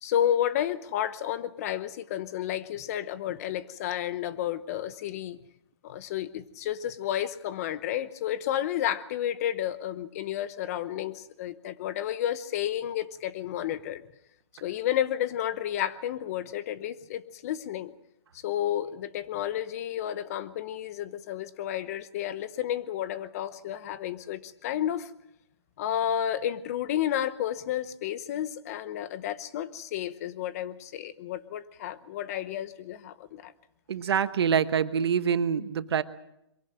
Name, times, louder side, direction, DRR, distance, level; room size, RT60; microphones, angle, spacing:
voice 1, 0.0-5.4 5.8-14.0 14.6-17.9 18.4-25.1 25.8-33.5, left 11 dB, 35° left, 15 dB, 0.9 m, -31 dB
voice 2, 33.9-36.0, right 7 dB, 65° right, 13 dB, 1.1 m, -25 dB
23.0 x 17.0 x 7.7 m, 0.81 s
hypercardioid pair, 160°, 14 cm